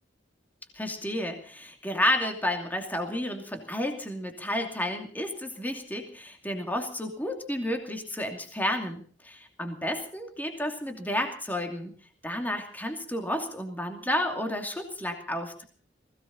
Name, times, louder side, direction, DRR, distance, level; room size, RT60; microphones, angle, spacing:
voice 1, 0.7-11.9 12.2-15.6, left 1 dB, 10° left, 4 dB, 2.7 m, -31 dB
20.0 x 17.0 x 4.2 m, 0.42 s
head